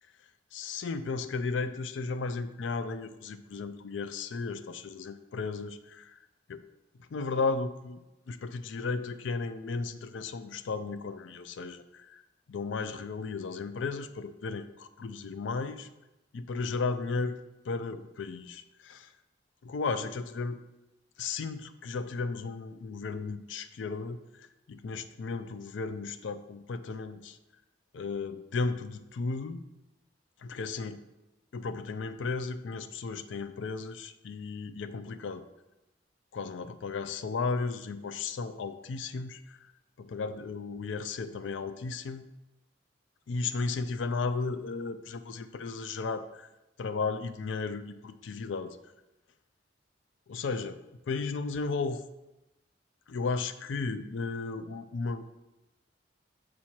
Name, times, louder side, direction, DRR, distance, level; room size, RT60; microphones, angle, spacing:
voice 1, 0.5-6.2 6.5-6.6 7.1-8.0 8.3-12.2 12.5-15.9 16.3-17.4 17.6-19.1 19.6-20.6 21.2-27.4 27.9-29.6 30.4-31.0 31.5-35.4 36.3-39.7 40.0-42.3 43.3-46.5 46.8-48.8 50.3-50.8 51.1-52.0 53.1-55.2, left 4 dB, 90° left, 12 dB, 0.4 m, -34 dB
7.4 x 4.3 x 4.5 m, 0.99 s
head